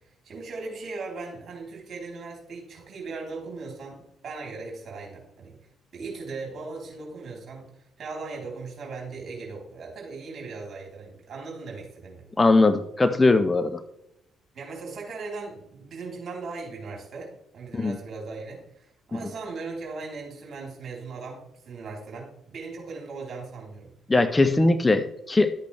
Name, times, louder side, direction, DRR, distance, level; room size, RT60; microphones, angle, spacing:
voice 1, 0.2-5.6 5.9-7.7 8.0-12.3 14.5-23.9, right 3 dB, 45° right, -2 dB, 4.1 m, -38 dB
voice 2, 12.4-13.8 17.7-18.0 19.1-19.2 24.1-25.5, left 2 dB, 20° left, 10 dB, 0.8 m, -20 dB
12.0 x 8.3 x 3.5 m, 0.81 s
figure-of-eight pair, 45°, 0 cm